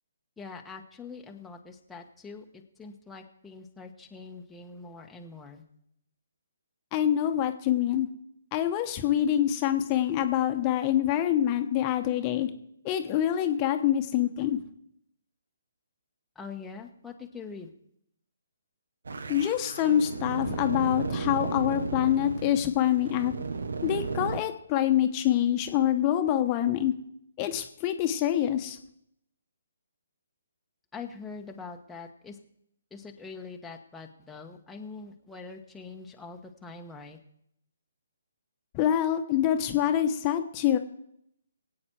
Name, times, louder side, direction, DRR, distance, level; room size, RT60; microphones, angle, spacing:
voice 1, 0.4-5.6 16.3-17.7 30.9-32.4 32.9-37.2, left 4 dB, 5° left, 0 dB, 1.2 m, -43 dB
voice 2, 6.9-8.1 8.5-12.5 12.8-14.6 19.3-23.3 23.8-26.9 27.4-28.8 38.7-40.8, left 11 dB, 25° left, 7 dB, 1.2 m, -25 dB
sound 1, 19.0-24.4, right 4 dB, 70° right, 1.0 m, -34 dB
22.0 x 8.7 x 4.6 m, 0.74 s
figure-of-eight pair, 140°, 0 cm